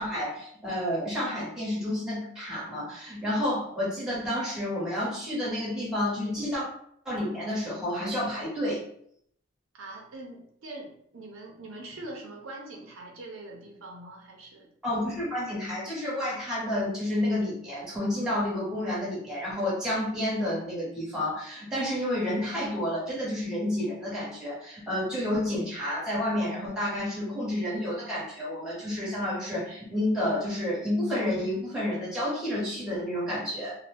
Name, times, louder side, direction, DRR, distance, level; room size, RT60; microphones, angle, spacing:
voice 1, 0.0-6.6 7.0-8.8 14.8-33.8, left 1 dB, 5° right, -7 dB, 1.1 m, -30 dB
voice 2, 9.7-14.7, right 2 dB, 75° right, 0 dB, 0.6 m, -43 dB
2.7 x 2.2 x 3.3 m, 0.66 s
head